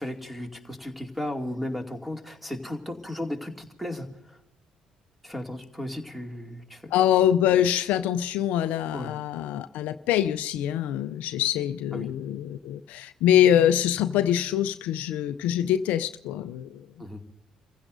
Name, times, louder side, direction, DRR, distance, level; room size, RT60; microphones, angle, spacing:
voice 1, 0.0-4.4 5.2-7.0 8.9-9.2 11.9-12.1 17.0-17.2, left 1 dB, 5° right, 3 dB, 2.5 m, -35 dB
voice 2, 6.9-16.8, left 10 dB, 70° left, 12 dB, 0.5 m, -24 dB
29.5 x 15.5 x 2.6 m, 0.78 s
hypercardioid pair, 50°, 3 cm